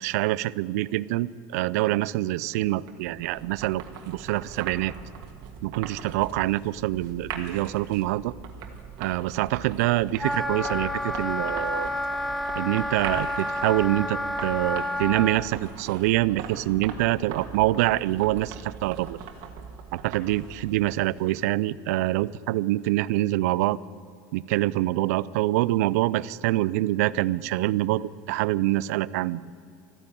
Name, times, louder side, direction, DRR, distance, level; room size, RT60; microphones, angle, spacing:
voice 1, 0.0-4.9 5.6-8.3 9.0-11.9 12.6-19.2 19.9-23.8 24.3-29.5, right 16 dB, 85° right, 20 dB, 0.4 m, -25 dB
sound 1, 2.5-21.6, right 7 dB, 55° right, 1.7 m, -41 dB
Wind instrument woodwind instrument, 10.2-15.4, left 1 dB, ahead, 0.6 m, -29 dB
14.0 x 9.8 x 9.0 m, 2.3 s
cardioid pair, 155°, 8 cm